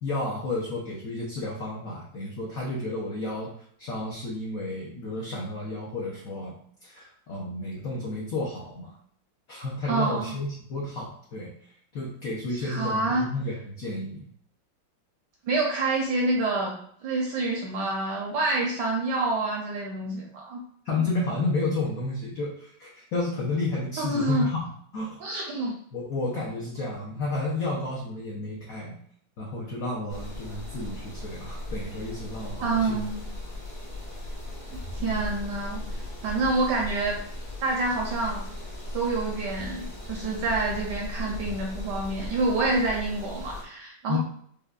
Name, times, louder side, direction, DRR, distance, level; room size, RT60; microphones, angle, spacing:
voice 1, 0.0-3.5 3.8-6.5 6.8-8.9 9.5-11.5 11.9-14.2 20.8-24.7 24.9-25.2 25.9-28.9 29.4-33.0 35.0-35.1 44.1-44.2, left 2 dB, 80° left, -3 dB, 0.7 m, -31 dB
voice 2, 9.9-10.3 12.6-13.3 15.5-16.8 17.0-20.6 24.0-24.5 25.2-25.8 32.6-33.2 35.0-35.8 36.2-37.2 37.6-38.4 38.9-44.2, right 2 dB, 75° right, -1 dB, 1.0 m, -27 dB
sound 1, 30.1-43.6, left 1 dB, 45° left, 0.6 m, -37 dB
4.9 x 2.2 x 2.3 m, 0.62 s
omnidirectional pair, 2.2 m